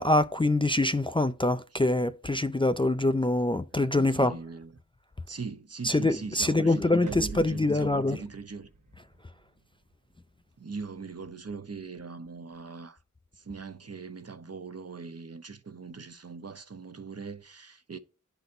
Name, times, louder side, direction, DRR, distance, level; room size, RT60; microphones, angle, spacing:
voice 1, 0.0-4.4 5.8-8.2, left 2 dB, 15° left, 0.3 m, -25 dB
voice 2, 3.7-4.7 5.3-8.7 10.6-13.0 13.3-18.0, right 4 dB, 55° right, 0.8 m, -41 dB
sound 1, 7.1-11.0, right 2 dB, 80° right, 1.2 m, -46 dB
11.5 x 4.0 x 2.6 m
wide cardioid pair, 50°, 30 cm